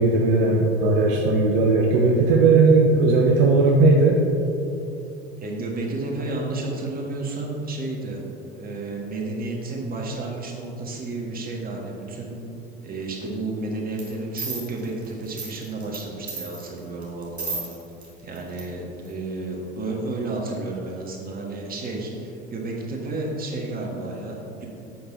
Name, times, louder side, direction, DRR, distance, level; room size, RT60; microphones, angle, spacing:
voice 1, 0.0-4.2, right 3 dB, 60° right, -1 dB, 0.9 m, -17 dB
voice 2, 5.4-8.2 8.5-12.4 12.8-17.6 18.2-24.7, right 2 dB, 30° right, -1 dB, 1.6 m, -31 dB
sound 1, 14.0-14.1 14.4-16.0 16.3-18.1 18.4-18.6 19.1-19.2, right 3 dB, 85° right, 1.5 m, -33 dB
7.7 x 5.8 x 3.9 m, 2.7 s
figure-of-eight pair, 70°, 32 cm